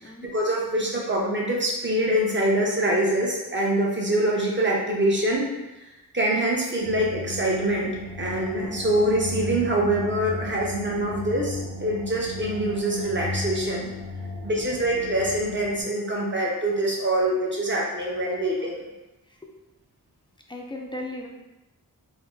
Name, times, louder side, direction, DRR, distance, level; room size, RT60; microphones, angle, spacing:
voice 1, 0.2-5.5 6.1-7.9 8.2-13.9 14.4-18.8, right 1 dB, 30° right, -3 dB, 0.8 m, -24 dB
sound 1, 6.8-15.8, left 2 dB, 60° right, 0.9 m, -35 dB
voice 2, 20.5-21.3, left 1 dB, 15° left, 0 dB, 0.4 m, -36 dB
3.6 x 2.0 x 3.7 m, 1.0 s
wide cardioid pair, 90°, 38 cm